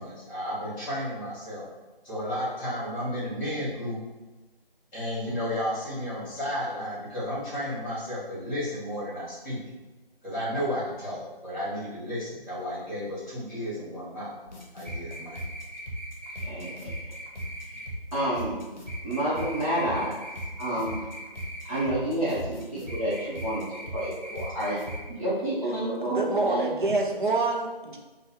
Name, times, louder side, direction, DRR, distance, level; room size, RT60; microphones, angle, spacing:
voice 1, 0.0-1.6 2.0-4.0 4.9-9.6 10.2-14.3 14.7-15.4, equal, 20° left, -10 dB, 1.5 m, -32 dB
sound 1, 14.5-25.0, equal, 50° left, 0.8 m, -38 dB
voice 2, 16.4-17.0 18.1-18.6 19.0-20.1 20.6-21.0 21.6-24.8 25.1-26.7, right 1 dB, 35° right, -12 dB, 1.0 m, -29 dB
voice 3, 26.0-28.0, right 3 dB, 55° right, 1 dB, 0.6 m, -26 dB
3.3 x 2.2 x 2.9 m, 1.1 s
figure-of-eight pair, 165°, 30 cm